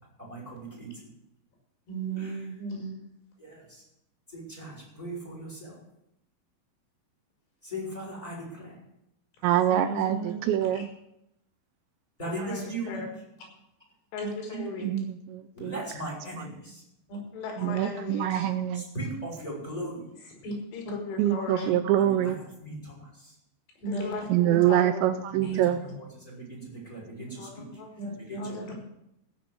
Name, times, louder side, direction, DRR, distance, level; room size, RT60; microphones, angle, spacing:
voice 1, 0.2-0.9 2.2-2.4 3.4-3.8 4.3-5.8 7.6-8.7 12.2-13.0 14.5-14.6 15.5-16.8 18.7-20.0 22.0-22.3 22.6-23.3 25.3-25.6 26.2-27.6 28.3-28.7, right 1 dB, 10° left, -3 dB, 4.4 m, -38 dB
voice 2, 1.9-3.0 9.7-10.3 10.7-10.8 14.2-14.3 17.1-17.2 20.4-20.5 21.6-21.7 23.8-24.1 25.4-25.6 28.0-28.7, right 3 dB, 65° left, -1 dB, 7.2 m, -34 dB
voice 3, 9.4-10.9 12.4-12.5 14.5-15.8 16.4-16.5 17.6-18.9 21.2-22.4 24.3-25.8, right 12 dB, 80° right, 11 dB, 2.6 m, -25 dB
voice 4, 12.2-12.6 12.9-13.1 14.1-14.9 17.3-18.5 20.7-21.8 23.9-25.1 27.4-27.9 28.4-28.7, left 4 dB, 85° left, 2 dB, 4.5 m, -37 dB
16.0 x 7.0 x 7.7 m, 0.82 s
omnidirectional pair, 5.5 m